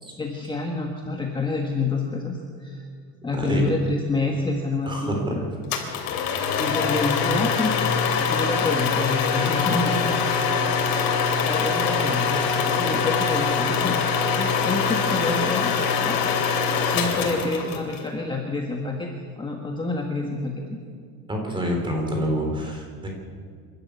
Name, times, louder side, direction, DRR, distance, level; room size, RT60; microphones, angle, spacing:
voice 1, 0.2-2.8 3.2-5.4 6.6-7.8 8.3-10.2 11.0-13.9 14.3-16.2 16.9-19.1 19.4-20.8, left 3 dB, 15° left, 1 dB, 1.5 m, -28 dB
voice 2, 3.2-3.6 4.9-5.4 21.3-23.1, equal, 15° right, 1 dB, 3.7 m, -27 dB
sound 1, 5.7-18.0, left 6 dB, 70° left, 3.3 m, -23 dB
27.0 x 12.0 x 8.3 m, 2.1 s
cardioid pair, 160°, 36 cm